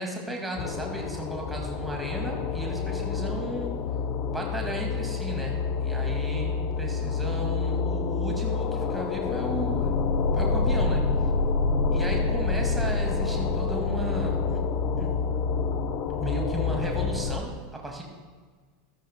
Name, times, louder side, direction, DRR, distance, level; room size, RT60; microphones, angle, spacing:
voice 1, 0.0-3.7 4.3-10.0 10.3-11.0 11.9-14.7 15.0-15.2 16.2-18.0, right 1 dB, 5° right, 0 dB, 2.2 m, -34 dB
sound 1, 0.5-17.4, left 4 dB, 40° left, 0.7 m, -27 dB
14.0 x 13.5 x 2.3 m, 1.5 s
figure-of-eight pair, 85°, 0 cm